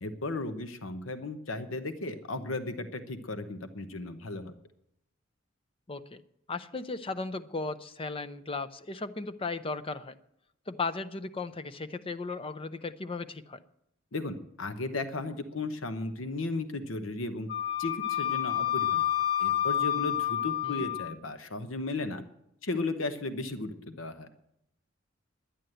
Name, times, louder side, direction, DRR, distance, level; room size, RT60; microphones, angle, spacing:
voice 1, 0.0-4.5 14.1-17.5 17.8-19.0 19.4-22.2 22.6-24.3, left 2 dB, 85° left, 9 dB, 1.0 m, -35 dB
voice 2, 5.9-6.2 6.5-10.2 10.7-13.6 20.6-20.9, left 3 dB, 30° left, 13 dB, 0.6 m, -36 dB
Wind instrument woodwind instrument, 17.5-21.1, left 11 dB, 55° left, 2.1 m, -29 dB
11.0 x 10.5 x 7.8 m, 0.78 s
head